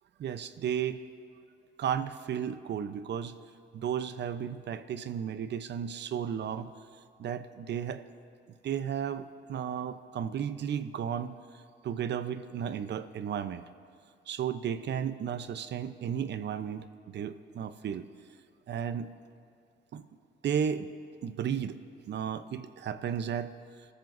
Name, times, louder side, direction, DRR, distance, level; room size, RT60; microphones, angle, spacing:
voice 1, 0.2-1.0 1.8-3.4 3.7-6.7 7.2-8.0 8.6-13.6 14.3-18.1 18.7-19.1 19.9-20.0 20.4-20.9 21.2-21.8 22.1-23.5, right 8 dB, 60° right, 11 dB, 0.8 m, -34 dB
29.5 x 14.0 x 2.7 m, 2.4 s
cardioid pair, 90°, 20 cm